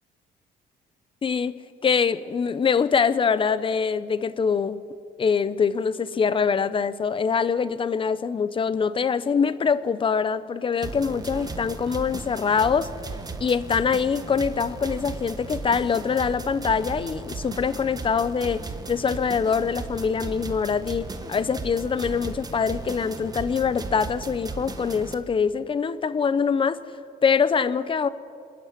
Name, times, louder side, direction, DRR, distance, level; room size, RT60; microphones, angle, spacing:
voice 1, 1.2-1.5 1.8-4.8 5.2-12.9 13.4-18.6 18.9-26.8 27.2-28.1, left 6 dB, 30° left, 15 dB, 0.9 m, -24 dB
sound 1, 10.8-25.1, right 3 dB, 20° right, 1.6 m, -36 dB
27.0 x 10.5 x 9.4 m, 2.4 s
cardioid pair, 110°, 17 cm